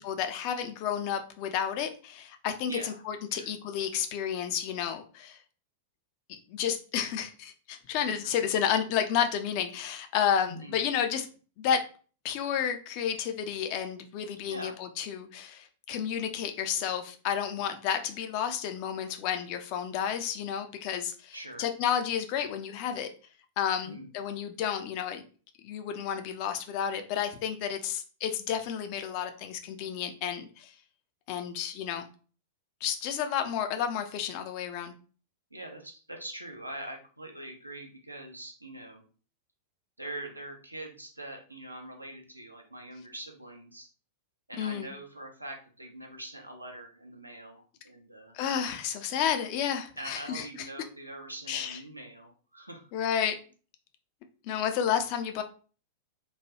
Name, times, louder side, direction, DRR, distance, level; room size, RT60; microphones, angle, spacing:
voice 1, 0.0-5.4 6.3-11.3 11.6-11.8 12.2-23.1 23.6-25.2 25.6-30.7 31.3-32.1 32.8-34.9 44.6-44.9 48.3-50.5 51.5-51.8 52.9-53.4 54.4-55.4, left 8 dB, 40° left, 7 dB, 0.4 m, -31 dB
voice 2, 2.7-3.0 3.3-3.5 10.5-10.8 14.5-14.7 21.3-21.7 23.8-24.1 35.5-39.0 40.0-43.9 44.5-48.4 50.0-52.9, right 1 dB, 85° right, 3 dB, 0.6 m, -43 dB
3.1 x 2.2 x 2.8 m, 0.39 s
figure-of-eight pair, 95°, 0 cm